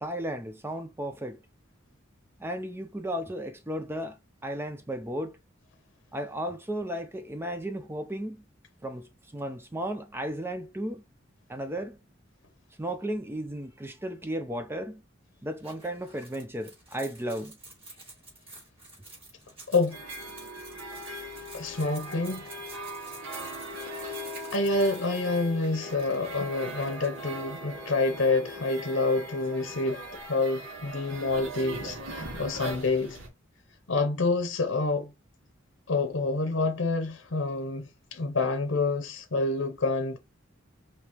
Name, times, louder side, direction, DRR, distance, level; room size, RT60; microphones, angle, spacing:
voice 1, 0.0-1.4 2.4-4.2 4.4-5.4 6.1-8.4 8.8-11.0 11.5-12.0 12.8-15.0 15.4-17.6, right 1 dB, 10° right, 0.5 m, -34 dB
sound 1, 15.6-27.3, right 2 dB, 30° right, 3.1 m, -50 dB
voice 2, 19.7-20.0 21.5-22.5 24.0-24.1 24.4-30.0 30.3-33.2 33.9-35.1 35.9-40.2, left 3 dB, 65° left, 0.8 m, -28 dB
sound 2, 19.9-33.3, right 1 dB, 75° right, 1.5 m, -40 dB
5.2 x 3.0 x 2.9 m
head